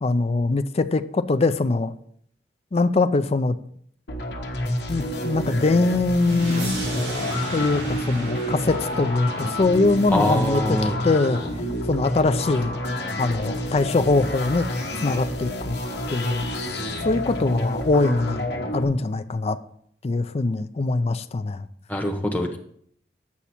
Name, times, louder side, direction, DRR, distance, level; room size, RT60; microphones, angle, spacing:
voice 1, 0.0-1.9 2.7-3.6 4.9-6.7 7.5-11.4 11.9-12.7 13.2-14.7 15.0-15.8 16.1-16.5 17.0-19.6 20.0-21.7, left 3 dB, 35° left, 0.4 m, -22 dB
sound 1, 4.1-18.8, left 1 dB, 65° left, 1.3 m, -29 dB
sound 2, 6.2-11.1, right 1 dB, 70° right, 2.8 m, -36 dB
voice 2, 10.1-11.0 21.9-22.6, left 1 dB, 10° left, 1.0 m, -23 dB
8.4 x 6.0 x 4.3 m
head